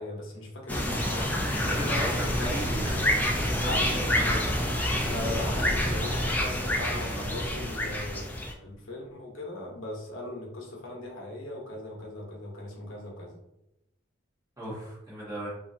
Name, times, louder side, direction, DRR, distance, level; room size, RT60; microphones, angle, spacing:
voice 1, 0.0-2.9 3.7-4.1 5.1-13.4, left 1 dB, 80° left, -2 dB, 0.9 m, -38 dB
sound 1, 0.7-8.5, left 1 dB, 10° left, 0.3 m, -28 dB
voice 2, 1.4-4.4 14.6-15.5, right 1 dB, 15° right, -8 dB, 1.4 m, -37 dB
3.2 x 2.6 x 2.6 m, 0.88 s
head